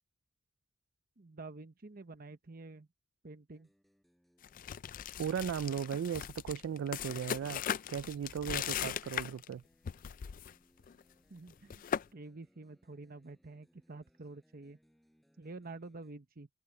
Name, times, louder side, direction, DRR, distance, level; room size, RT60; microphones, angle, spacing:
voice 1, 1.2-2.9 3.2-3.7 11.3-11.9 12.1-14.8 15.4-16.5, right 3 dB, 50° right, 1.0 m, -49 dB
sound 1, 3.5-16.1, equal, ahead, 6.4 m, -71 dB
sound 2, 4.4-9.5 9.9-10.5 10.8-11.0 11.5-12.1, left 9 dB, 45° left, 0.3 m, -39 dB
voice 2, 5.2-7.6 7.9-9.6, right 8 dB, 75° right, 0.3 m, -36 dB
open air
head